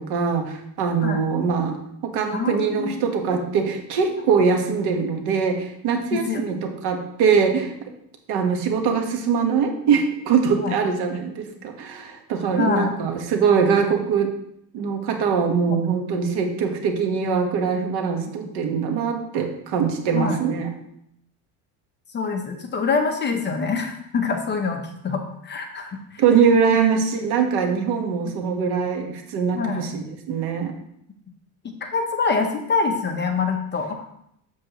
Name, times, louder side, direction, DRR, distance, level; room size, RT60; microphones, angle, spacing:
voice 1, 0.0-1.8 2.0-7.7 8.3-14.3 14.7-20.7 26.2-30.7, right 6 dB, 65° right, 4 dB, 1.4 m, -22 dB
voice 2, 2.3-3.2 6.1-6.4 10.6-10.7 12.5-13.0 15.7-15.8 20.1-20.4 22.1-26.2 26.7-26.8 28.3-28.4 29.5-29.9 31.6-34.0, left 5 dB, 25° left, 4 dB, 0.8 m, -25 dB
7.5 x 7.3 x 3.0 m, 0.74 s
cardioid pair, 145°, 43 cm